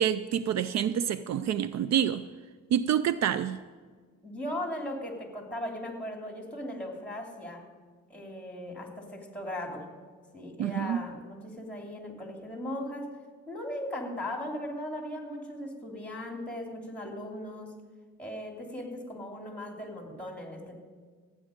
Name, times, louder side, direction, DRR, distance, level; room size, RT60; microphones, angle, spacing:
voice 1, 0.0-2.3 2.7-3.6 10.6-11.1, right 9 dB, 60° right, 0.5 m, -27 dB
voice 2, 4.2-7.7 8.1-9.9 10.3-13.2 13.5-17.8 18.2-20.8, left 1 dB, 5° left, 2.9 m, -38 dB
15.5 x 9.2 x 5.2 m
cardioid pair, 90°, 30 cm